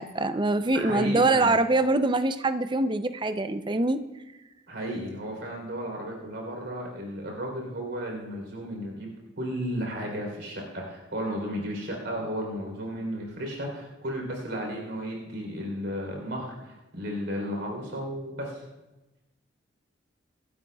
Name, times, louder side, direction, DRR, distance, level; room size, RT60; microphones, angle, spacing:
voice 1, 0.0-4.0, right 2 dB, 25° right, 11 dB, 0.5 m, -24 dB
voice 2, 0.7-1.5 4.7-9.1 9.4-18.7, equal, 70° right, 0 dB, 3.6 m, -34 dB
25.5 x 12.5 x 2.3 m, 1.1 s
head